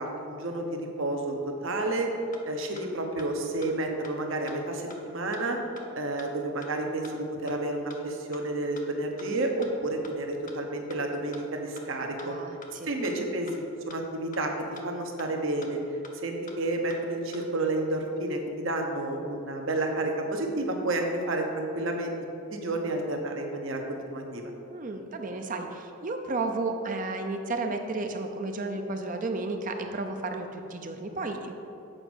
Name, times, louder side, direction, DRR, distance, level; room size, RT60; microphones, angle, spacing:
voice 1, 0.0-1.3 1.6-2.1 2.4-5.6 5.9-12.3 12.8-13.5 13.9-14.5 14.8-15.8 16.2-22.1 22.5-24.5, right 2 dB, 65° right, 3 dB, 1.0 m, -30 dB
sound 1, 2.3-2.4 2.8-2.9 3.2-3.3 3.6-3.7 4.0-4.1 4.5-4.6 4.9-5.0 5.3-5.4 5.8-5.9 6.2-6.3 6.6-6.7 7.0-7.1 7.5-7.6 7.9-8.0 8.3-8.4 8.8-8.9 9.2-9.3 9.6-9.7 10.0-10.1 10.5-10.6 10.9-11.0 11.3-11.4 11.8-11.9 12.2-12.3 12.6-12.7 13.0-13.1 13.5-13.6 13.9-14.0 14.3-14.4 14.8-14.9 15.2-15.3 15.6-15.7 16.0-16.1 16.5-16.6 16.9-17.0 17.3-17.4, left 4 dB, 35° left, 0.7 m, -46 dB
voice 2, 12.2-12.9 24.7-31.5, right 3 dB, 40° right, 5 dB, 0.6 m, -33 dB
7.8 x 5.1 x 6.3 m, 2.7 s
head